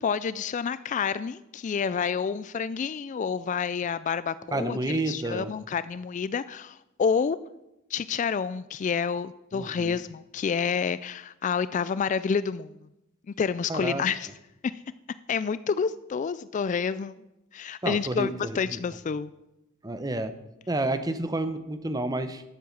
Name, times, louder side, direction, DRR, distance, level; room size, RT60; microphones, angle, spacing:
voice 1, 0.0-7.4 7.9-12.7 13.4-14.3 15.3-17.2 17.5-19.3, left 6 dB, 35° left, 16 dB, 0.3 m, -29 dB
voice 2, 4.5-5.5 9.5-10.0 13.7-14.0 17.8-18.8 19.8-20.3 20.7-22.4, right 2 dB, 20° right, 10 dB, 0.8 m, -30 dB
12.0 x 7.7 x 7.1 m, 0.91 s
head